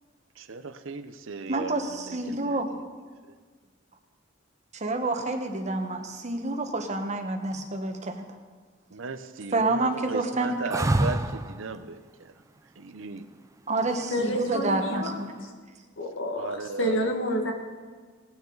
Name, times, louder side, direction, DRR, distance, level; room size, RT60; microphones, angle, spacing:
voice 1, 0.4-2.8 8.9-12.3 12.8-13.2 14.4-14.9 16.4-17.1, right 3 dB, 75° right, 9 dB, 0.7 m, -37 dB
voice 2, 1.5-2.7 4.7-8.2 9.5-10.7 13.7-15.3, right 2 dB, 35° right, 4 dB, 1.2 m, -28 dB
sound 1, 10.7-11.6 14.2-14.8, right 1 dB, 15° right, 0.5 m, -26 dB
voice 3, 14.1-15.2 16.0-16.5 16.8-17.5, equal, 75° left, 3 dB, 1.7 m, -28 dB
18.5 x 9.3 x 4.0 m, 1.5 s
head